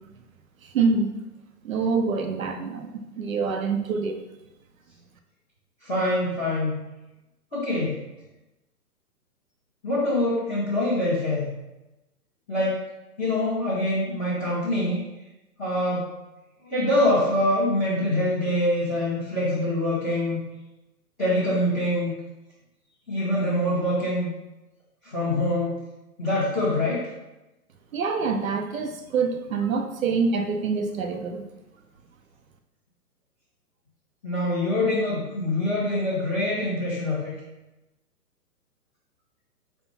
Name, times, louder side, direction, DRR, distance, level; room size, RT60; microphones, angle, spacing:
voice 1, 0.7-1.1 1.6-2.9 3.2-4.2 27.9-31.4, right 4 dB, 55° right, 5 dB, 1.0 m, -25 dB
voice 2, 5.8-6.8 7.5-8.0 9.8-11.5 12.5-12.8 13.2-15.0 15.6-16.1 16.6-20.4 21.2-22.1 23.1-24.3 25.0-25.8 26.2-27.1 34.2-37.3, left 1 dB, ahead, -27 dB, 0.4 m, -24 dB
5.7 x 3.5 x 5.8 m, 0.99 s
hypercardioid pair, 145°, 47 cm